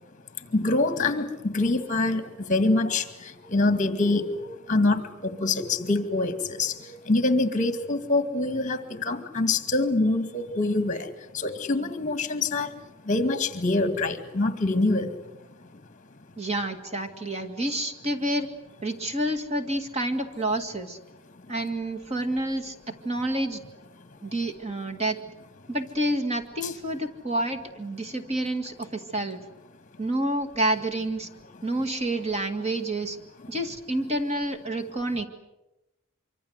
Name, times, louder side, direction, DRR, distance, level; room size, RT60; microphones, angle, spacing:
voice 1, 0.5-3.1 3.5-11.1 11.3-12.7 13.1-15.1, left 2 dB, 40° left, 10 dB, 2.1 m, -25 dB
voice 2, 16.4-18.5 18.8-21.0 21.5-23.6 24.2-25.2 25.7-29.4 30.0-31.3 31.6-33.2 33.5-35.3, right 1 dB, 30° right, 5 dB, 2.0 m, -29 dB
25.0 x 25.0 x 8.1 m, 0.99 s
head